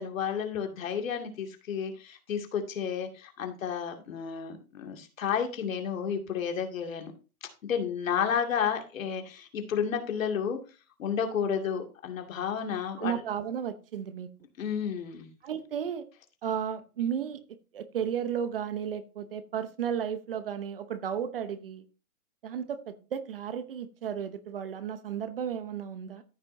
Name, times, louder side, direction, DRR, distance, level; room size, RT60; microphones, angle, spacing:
voice 1, 0.0-7.1 7.6-10.6 11.0-13.2 14.6-15.3, left 7 dB, 60° left, 4 dB, 2.4 m, -31 dB
voice 2, 13.0-14.3 15.4-16.1 16.4-21.8 22.4-26.2, right 8 dB, 40° right, 12 dB, 0.9 m, -34 dB
14.0 x 6.1 x 2.7 m, 0.32 s
hypercardioid pair, 170°, 44 cm